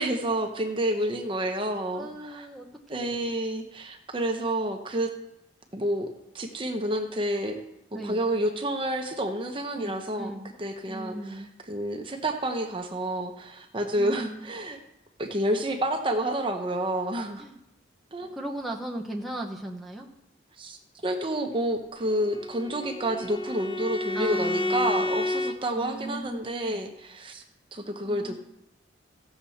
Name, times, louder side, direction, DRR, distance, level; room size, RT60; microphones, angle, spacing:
voice 1, 0.0-2.5 2.9-5.1 5.7-6.1 6.3-7.6 7.9-10.3 10.6-14.8 15.2-17.4 18.1-18.4 20.6-20.8 21.0-27.4 27.7-28.4, right 1 dB, 25° right, 4 dB, 0.9 m, -29 dB
voice 2, 1.9-3.4 7.9-8.3 9.7-10.5 10.9-11.5 13.9-14.5 17.4-17.6 18.3-20.1 24.1-25.1 25.8-26.8 28.1-28.4, right 1 dB, ahead, -2 dB, 0.9 m, -37 dB
Bowed string instrument, 22.0-25.6, left 2 dB, 30° left, 0.5 m, -30 dB
16.0 x 7.0 x 4.2 m, 0.84 s
head